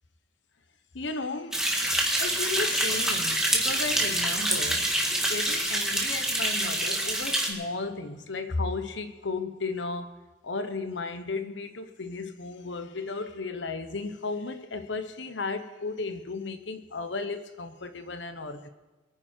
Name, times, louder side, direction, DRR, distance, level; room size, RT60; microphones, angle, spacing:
voice 1, 0.9-10.2 10.4-18.7, left 3 dB, 75° left, 9 dB, 1.1 m, -34 dB
sound 1, 1.5-7.5, right 1 dB, 5° right, 1.8 m, -26 dB
22.5 x 9.8 x 4.5 m, 1.2 s
head